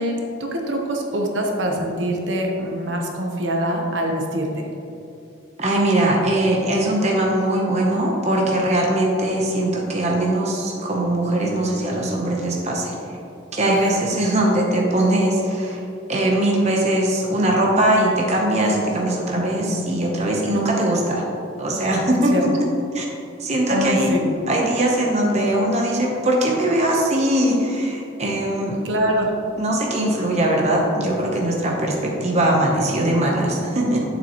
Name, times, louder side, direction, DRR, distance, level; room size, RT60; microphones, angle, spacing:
voice 1, 0.0-4.7 9.4-9.5 13.6-13.9 19.3-19.8 22.3-22.5 23.7-24.3 28.8-29.3, equal, 70° right, 1 dB, 1.0 m, -24 dB
voice 2, 5.6-13.2 13.5-15.8 16.1-21.2 21.6-22.7 22.9-23.1 23.4-28.8 29.6-34.1, right 1 dB, 35° right, -1 dB, 0.9 m, -21 dB
9.0 x 7.3 x 3.0 m, 2.8 s
head